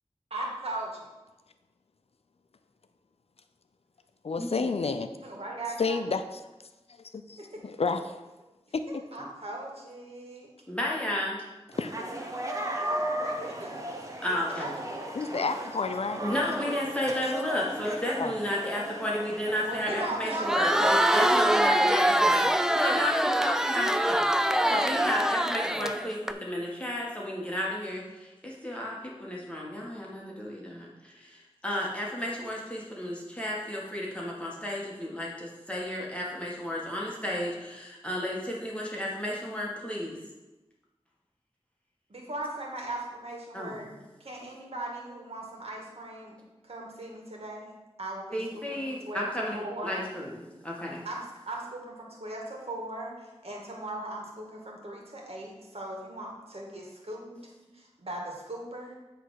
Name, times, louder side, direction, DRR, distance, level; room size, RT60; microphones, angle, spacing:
voice 1, 0.3-1.1 5.2-6.0 7.4-7.7 9.1-10.5 12.8-13.9 14.3-15.1 19.6-21.7 42.1-43.9 44.2-46.4 46.6-48.8 49.1-49.3 49.5-49.9 51.0-57.3 57.7-59.0, right 2 dB, 65° right, -1 dB, 1.9 m, -38 dB
voice 2, 4.2-5.1 5.8-6.2 7.1-8.2 8.7-9.0 11.8-12.0 15.1-16.2 17.2-17.3 18.2-18.3, left 4 dB, 65° left, 9 dB, 0.5 m, -30 dB
voice 3, 10.7-11.4 14.2-14.7 16.2-40.2 43.5-43.8 48.3-49.6 49.8-51.0, left 1 dB, 10° left, -4 dB, 1.6 m, -32 dB
sound 1, 11.7-20.9, right 1 dB, 30° right, 1.1 m, -36 dB
Crowd, 20.3-26.3, right 1 dB, 5° right, 0.4 m, -24 dB
8.3 x 3.4 x 6.4 m, 1.1 s
wide cardioid pair, 60°, 11 cm